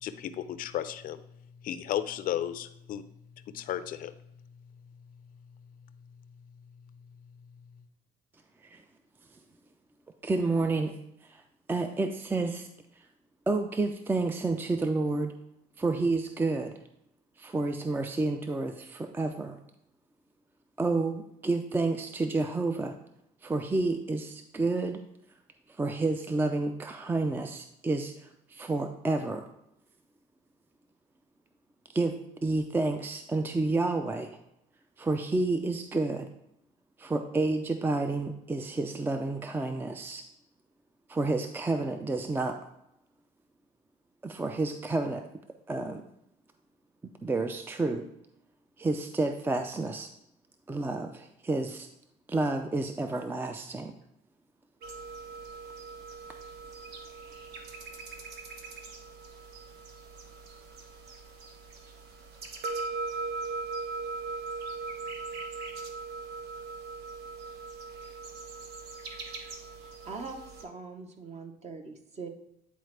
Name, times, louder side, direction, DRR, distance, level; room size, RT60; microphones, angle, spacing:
voice 1, 0.0-1.2 1.6-3.0 3.5-4.1, left 11 dB, 55° left, 11 dB, 0.5 m, -33 dB
voice 2, 10.2-10.9 11.2-11.4 11.7-12.7 13.5-15.3 15.8-16.7 17.4-19.6 20.8-23.0 23.4-25.0 25.7-29.4 31.9-32.2 32.4-34.3 35.0-36.3 37.0-40.2 41.1-42.6 44.2-45.3 45.7-46.0 47.2-48.1 48.8-50.1 50.7-51.9 52.3-53.9, right 3 dB, 10° right, 7 dB, 0.4 m, -30 dB
sound 1, 54.8-70.6, right 4 dB, 75° right, 1.0 m, -40 dB
voice 3, 69.5-72.3, right 4 dB, 40° right, 5 dB, 0.9 m, -43 dB
9.3 x 4.1 x 3.2 m, 0.81 s
cardioid pair, 110°, 17 cm